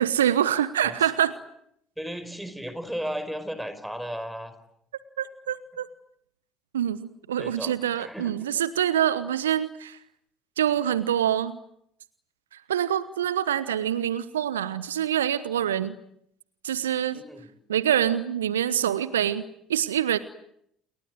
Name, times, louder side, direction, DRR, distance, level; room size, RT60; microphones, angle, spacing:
voice 1, 0.0-1.3 5.2-5.9 6.7-10.0 10.6-11.6 12.5-15.9 16.6-17.2 17.7-19.4 19.7-20.2, right 10 dB, 75° right, 17 dB, 1.0 m, -25 dB
voice 2, 2.0-4.5 7.4-8.6 17.1-17.5, equal, 5° right, 11 dB, 4.9 m, -35 dB
29.0 x 22.0 x 9.2 m, 0.73 s
figure-of-eight pair, 60°, 0 cm